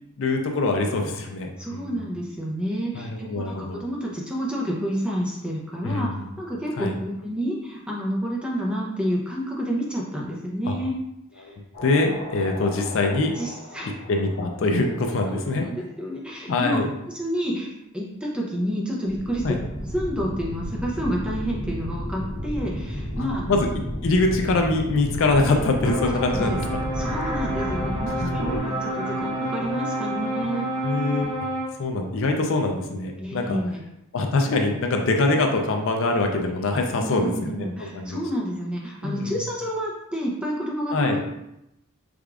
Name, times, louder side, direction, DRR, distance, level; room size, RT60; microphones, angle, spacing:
voice 1, 0.2-2.0 2.9-3.8 5.8-6.3 6.8-6.9 10.7-10.8 11.4-13.3 14.1-15.6 16.5-16.9 19.4-19.6 23.2-23.7 24.0-26.6 28.2-28.6 30.8-31.3 31.8-33.6 34.1-38.2 39.0-39.4 40.9-41.2, left 2 dB, 60° left, 3 dB, 0.4 m, -24 dB
voice 2, 1.6-6.1 6.4-10.9 11.3-11.5 13.4-13.9 15.3-16.8 17.1-19.4 19.8-23.4 26.3-26.6 27.0-30.7 33.2-33.8 37.0-41.2, equal, 5° right, -3 dB, 0.5 m, -29 dB
sound 1, 11.7-15.7 19.1-28.6, equal, 80° left, 1.3 m, -33 dB
sound 2, 25.8-31.7, right 1 dB, 50° right, 1.4 m, -29 dB
4.8 x 2.4 x 2.4 m, 0.86 s
head